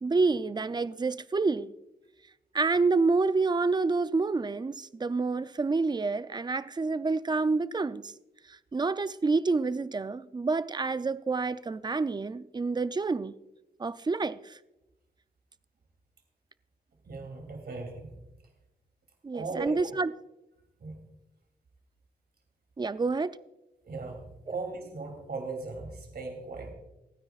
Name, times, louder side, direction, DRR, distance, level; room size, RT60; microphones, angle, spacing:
voice 1, 0.0-1.7 2.5-8.1 8.5-13.4 13.8-14.6 19.2-20.1 22.8-23.4, right 3 dB, 25° right, 0.4 m, -28 dB
voice 2, 17.0-18.2 19.3-19.7 20.8-21.0 23.8-26.7, right 3 dB, 70° right, 3.0 m, -38 dB
28.5 x 9.6 x 2.4 m
wide cardioid pair, 120°, 17 cm